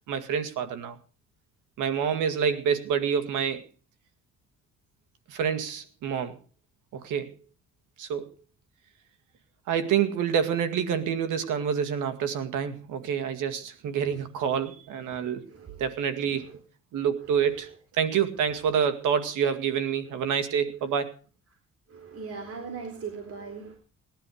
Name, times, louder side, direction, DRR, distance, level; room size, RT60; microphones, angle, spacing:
voice 1, 0.1-1.0 1.8-3.6 5.3-6.4 6.9-7.3 8.0-8.3 9.7-15.5 15.8-16.5 16.9-21.1, right 7 dB, 85° right, 10 dB, 2.1 m, -27 dB
voice 2, 15.5-16.6 17.3-17.8 18.5-18.8 20.0-20.2 21.9-23.8, right 5 dB, 50° right, 4 dB, 4.0 m, -41 dB
19.0 x 11.5 x 4.9 m, 0.36 s
cardioid pair, 90°, 30 cm